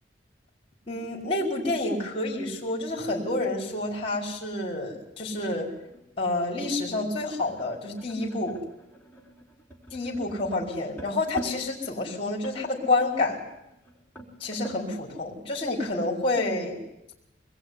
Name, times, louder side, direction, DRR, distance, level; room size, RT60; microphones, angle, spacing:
voice 1, 0.9-5.7 6.2-8.6 9.9-13.4 14.4-16.8, left 2 dB, 30° left, 0 dB, 4.9 m, -28 dB
sound 1, 5.1-14.9, right 1 dB, 10° left, 4.4 m, -45 dB
25.0 x 20.5 x 9.8 m, 0.87 s
head